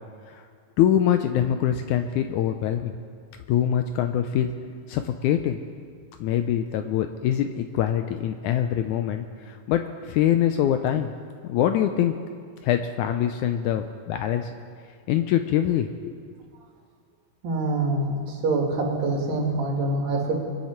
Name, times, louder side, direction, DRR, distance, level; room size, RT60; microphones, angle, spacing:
voice 1, 0.8-2.9 3.5-4.5 4.9-5.6 6.2-11.1 11.4-12.2 12.6-14.5 15.1-16.3, left 10 dB, 80° left, 7 dB, 1.8 m, -24 dB
voice 2, 17.4-20.3, right 2 dB, 80° right, 0 dB, 3.8 m, -25 dB
23.5 x 10.0 x 4.4 m, 2.1 s
omnidirectional pair, 3.9 m